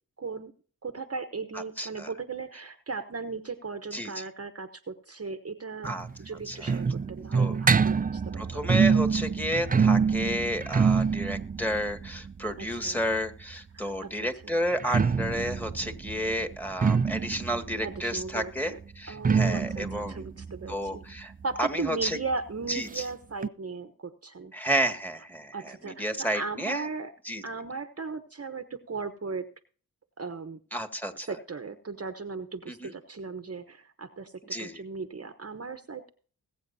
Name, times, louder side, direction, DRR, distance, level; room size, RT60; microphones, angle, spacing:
voice 1, 0.2-0.5 0.8-5.9 6.2-8.7 12.6-13.0 13.7-14.6 17.8-18.8 19.1-21.0 21.4-24.5 25.5-27.1 27.4-29.5 30.2-30.6 31.3-36.1, right 4 dB, 40° right, 10 dB, 1.1 m, -37 dB
voice 2, 1.8-2.1 3.9-4.2 5.8-6.1 6.5-6.8 7.3-7.6 8.4-20.3 20.7-21.3 21.6-22.2 22.7-23.1 24.5-26.8 27.3-27.4 30.7-31.3 32.7-32.9 34.5-34.8, equal, 5° left, 6 dB, 2.0 m, -31 dB
sound 1, 5.8-13.5 14.7-22.0 22.3-22.4 22.7-22.8 23.4-23.5, right 5 dB, 25° right, 0.4 m, -26 dB
21.0 x 8.1 x 2.7 m, 0.42 s
cardioid pair, 45°, 38 cm